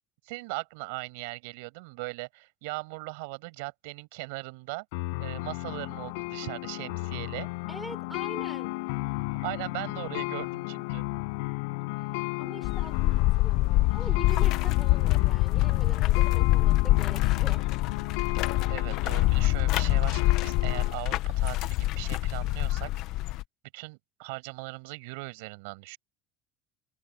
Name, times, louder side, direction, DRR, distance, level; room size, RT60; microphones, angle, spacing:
voice 1, 0.3-4.9 5.2-7.5 9.4-11.1 18.7-22.9 23.7-26.0, right 28 dB, 80° right, 7.2 m, -39 dB
sound 1, 4.9-20.9, left 27 dB, 85° left, 6.0 m, -35 dB
voice 2, 7.7-8.7 12.4-17.6, right 1 dB, 5° right, 4.9 m, -44 dB
sound 2, 12.6-23.4, left 17 dB, 50° left, 0.8 m, -25 dB
cardioid pair, 175°, 0 cm